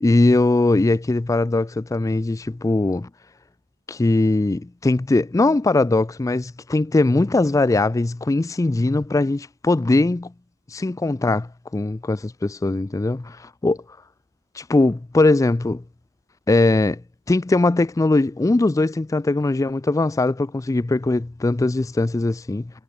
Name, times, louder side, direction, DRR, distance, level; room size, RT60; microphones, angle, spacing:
voice 1, 0.0-3.1 3.9-10.3 10.7-13.2 13.6-13.8 14.6-15.8 16.5-17.0 17.3-22.7, left 2 dB, 15° left, 0.3 m, -20 dB
head